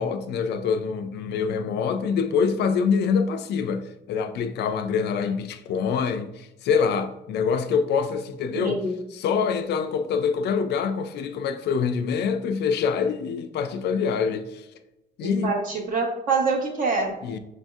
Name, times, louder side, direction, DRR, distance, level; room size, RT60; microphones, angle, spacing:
voice 1, 0.0-8.8 9.1-14.7 15.2-15.5 17.2-17.4, left 6 dB, 60° left, 0.4 m, -25 dB
voice 2, 8.5-9.0 15.2-17.1, right 3 dB, 45° right, 0.9 m, -25 dB
6.1 x 2.6 x 2.4 m
cardioid pair, 115°, 19 cm